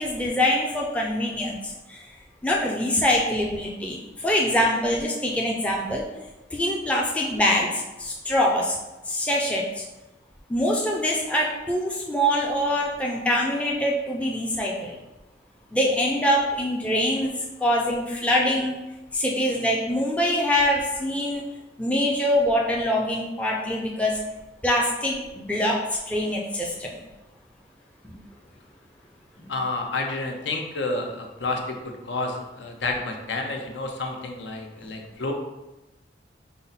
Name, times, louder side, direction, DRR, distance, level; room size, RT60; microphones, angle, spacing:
voice 1, 0.0-2.1 2.4-6.0 6.5-8.8 9.1-9.8 10.5-15.0 15.7-18.7 19.1-21.4 21.8-24.2 24.6-27.0 28.0-28.2 29.4-29.5, left 1 dB, 5° left, -3 dB, 0.4 m, -24 dB
voice 2, 29.5-35.3, left 2 dB, 70° left, 2 dB, 0.6 m, -30 dB
5.5 x 2.0 x 4.0 m, 1.0 s
head